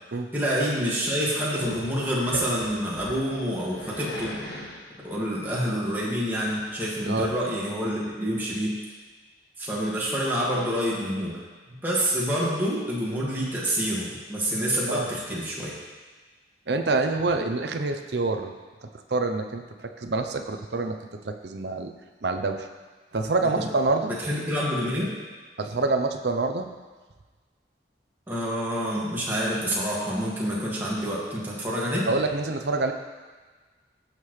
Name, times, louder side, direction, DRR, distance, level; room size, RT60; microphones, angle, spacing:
voice 1, 0.3-4.4 5.0-8.7 9.6-11.4 11.7-15.8 23.6-23.7 24.1-25.1 28.3-32.1, equal, 10° right, -7 dB, 2.1 m, -27 dB
Growling, 1.6-7.4, left 1 dB, 65° left, 1.6 m, -40 dB
voice 2, 16.7-18.6 19.1-21.0 21.2-21.9 22.2-22.7 23.1-24.1 25.6-26.7 32.1-32.9, right 3 dB, 70° right, 5 dB, 0.7 m, -26 dB
16.5 x 6.7 x 3.3 m, 1.4 s
head